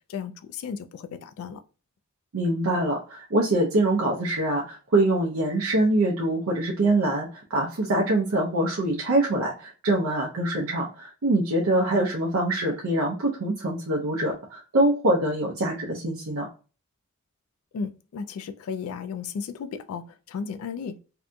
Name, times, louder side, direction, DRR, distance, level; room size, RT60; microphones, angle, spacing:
voice 1, 0.1-1.6 17.7-21.0, left 6 dB, 80° left, 0.3 m, -34 dB
voice 2, 2.3-16.5, right 1 dB, 75° right, 0.6 m, -24 dB
2.6 x 2.2 x 2.5 m
head